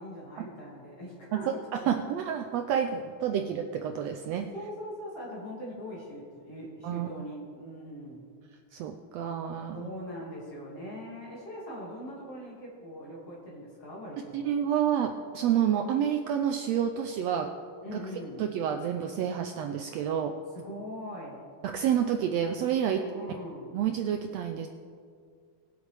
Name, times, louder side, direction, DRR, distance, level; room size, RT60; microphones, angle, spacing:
voice 1, 0.0-1.5 4.5-8.3 9.7-14.5 17.8-18.4 20.5-21.5 22.9-23.8, equal, 50° left, -5 dB, 2.9 m, -41 dB
voice 2, 1.7-4.5 6.8-7.1 8.7-9.9 14.3-17.5 17.9-18.0 18.4-20.3 21.6-23.0 23.7-24.7, right 9 dB, 80° right, 5 dB, 1.5 m, -29 dB
20.5 x 8.0 x 3.3 m, 2.2 s
omnidirectional pair, 3.5 m